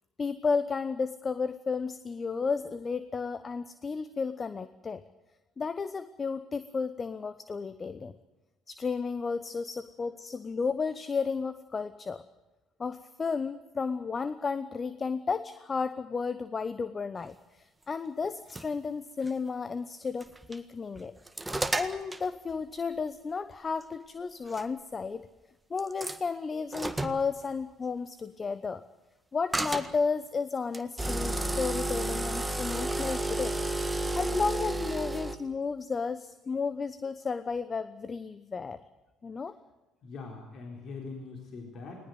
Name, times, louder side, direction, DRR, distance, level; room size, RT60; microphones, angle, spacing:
voice 1, 0.2-5.0 5.6-8.1 8.7-12.2 12.8-21.1 21.8-25.3 25.7-28.8 29.3-33.6 34.1-38.8 39.2-39.5, left 5 dB, 35° left, 14 dB, 0.9 m, -33 dB
sound 1, 18.2-18.7 19.2-19.3 20.2-20.6 21.0-22.3 23.8-23.9 24.5-24.6 25.8-26.2 26.7-27.2 29.5-29.9 30.7-35.4, right 2 dB, 15° right, 1.7 m, -31 dB
voice 2, 40.0-42.1, left 4 dB, 55° left, 2 dB, 4.1 m, -42 dB
20.0 x 19.0 x 8.0 m, 1.1 s
hypercardioid pair, 55°, 0 cm